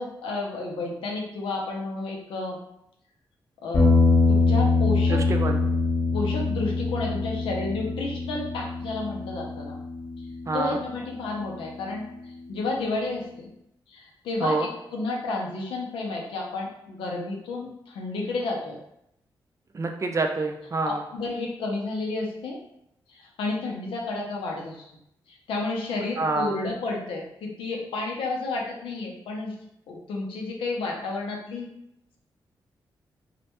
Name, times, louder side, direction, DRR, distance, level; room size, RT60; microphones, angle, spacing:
voice 1, 0.0-2.6 3.6-3.9 4.3-5.2 6.1-9.8 10.5-13.5 13.9-18.8 20.8-22.6 23.1-24.9 25.3-29.6 29.9-31.7, left 3 dB, 90° left, -1 dB, 0.5 m, -31 dB
sound 1, 3.7-12.1, left 3 dB, 35° left, 0.8 m, -24 dB
voice 2, 5.1-5.6 10.5-10.8 14.4-14.7 19.7-21.0 26.2-26.6, right 3 dB, 35° right, 4 dB, 0.4 m, -27 dB
2.1 x 2.1 x 2.9 m, 0.79 s
cardioid pair, 55°, 9 cm